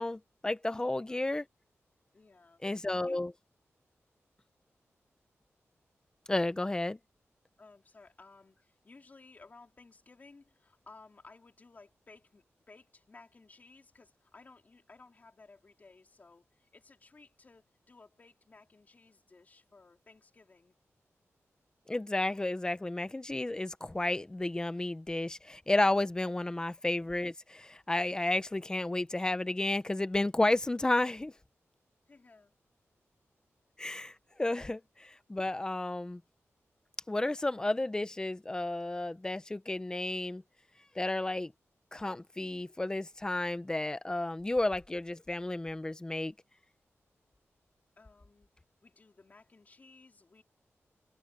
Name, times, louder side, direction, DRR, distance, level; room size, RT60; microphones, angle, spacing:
voice 1, 0.0-1.4 2.6-3.3 6.3-7.0 21.9-31.3 33.8-36.2 37.1-40.4 40.9-41.5 41.9-46.3, left 2 dB, 15° left, 0.8 m, -32 dB
voice 2, 0.8-1.2 2.1-2.6 2.9-3.2 7.6-20.7 32.1-32.5 48.0-48.5 48.8-50.4, left 3 dB, 35° left, 3.8 m, -58 dB
wide cardioid pair, 165°, 5 cm